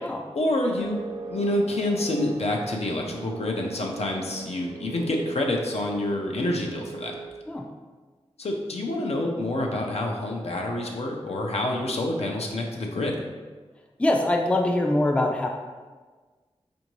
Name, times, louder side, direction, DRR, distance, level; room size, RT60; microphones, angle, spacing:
voice 1, 0.3-1.0 1.3-7.1 8.4-13.1, left 1 dB, 70° left, 0 dB, 0.5 m, -27 dB
sound 1, 0.8-7.3, right 5 dB, 60° right, 0.7 m, -39 dB
voice 2, 14.0-15.5, left 1 dB, 10° left, 2 dB, 0.4 m, -23 dB
4.4 x 2.6 x 3.0 m, 1.4 s
wide cardioid pair, 70°, 11 cm